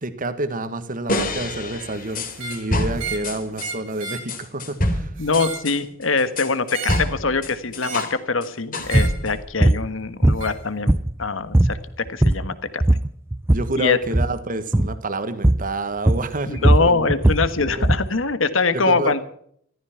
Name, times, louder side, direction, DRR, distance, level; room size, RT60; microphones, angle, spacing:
voice 1, 0.0-5.2 13.5-17.1 17.6-17.9 18.7-19.1, right 2 dB, 45° right, 11 dB, 1.5 m, -29 dB
sound 1, 1.1-3.7 4.3-8.2 8.4-9.4, left 1 dB, 45° left, 3.0 m, -27 dB
sound 2, 2.3-2.6 3.0-3.3 3.6-4.3 5.2-5.7 6.7-7.1 7.8-8.2 8.8-9.2 10.4-10.6, right 5 dB, 70° right, 3.4 m, -33 dB
voice 2, 5.2-10.9 11.2-12.8 13.8-14.0 16.5-19.2, left 4 dB, 75° left, 12 dB, 1.5 m, -23 dB
sound 3, 8.9-9.1 9.6-9.8 10.2-11.2 11.5-11.8 12.1-12.5 12.8-13.7 14.1-14.4 14.7-15.0 15.4-15.7 16.1-18.1, right 1 dB, 15° right, 0.5 m, -18 dB
15.0 x 14.0 x 5.8 m, 0.63 s
head